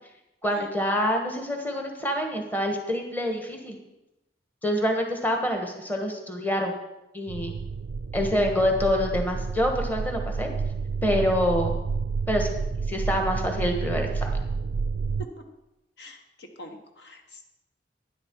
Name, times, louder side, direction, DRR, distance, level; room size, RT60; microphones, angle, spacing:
voice 1, 0.4-3.8 4.6-6.7 7.1-7.5 8.1-10.5 11.0-11.7 12.3-12.5 12.9-14.3, equal, 10° left, 3 dB, 1.3 m, -26 dB
sound 1, 7.3-15.3, right 4 dB, 65° right, 0.4 m, -30 dB
voice 2, 16.0-17.4, left 1 dB, 70° left, 4 dB, 1.3 m, -46 dB
12.0 x 10.5 x 4.6 m, 0.94 s
head